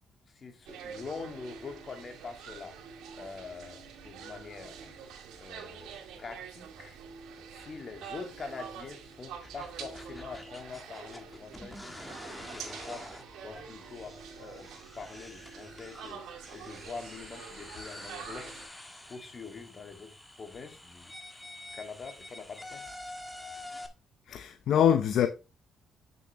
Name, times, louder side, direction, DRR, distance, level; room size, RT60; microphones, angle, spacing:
voice 1, 0.3-2.8 3.2-4.9 5.4-7.0 7.5-13.1 13.4-18.6 19.1-21.2 21.7-22.9, left 4 dB, 40° left, 2.0 m, -44 dB
sound 1, 0.7-18.7, right 7 dB, 85° right, 2.5 m, -46 dB
sound 2, 9.3-23.9, left 1 dB, 10° left, 1.5 m, -47 dB
voice 2, 24.3-25.3, left 9 dB, 70° left, 0.7 m, -24 dB
8.3 x 6.9 x 3.0 m
cardioid pair, 90°, 0 cm